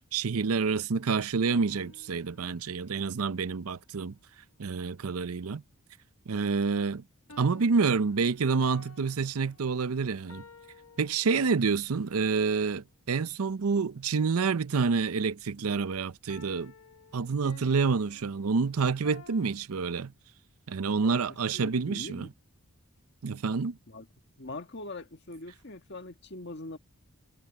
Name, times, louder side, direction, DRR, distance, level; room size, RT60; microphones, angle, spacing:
voice 1, 0.1-4.1 4.6-5.6 6.3-7.0 7.4-10.4 11.0-16.7 17.1-20.1 20.7-22.3 23.2-23.8, right 5 dB, 75° right, 0.6 m, -28 dB
sound 1, 1.4-2.8 7.3-11.8 16.3-19.6, left 3 dB, 70° left, 1.6 m, -53 dB
voice 2, 20.9-22.3 23.9-24.1 24.4-26.8, left 2 dB, 50° left, 1.7 m, -42 dB
head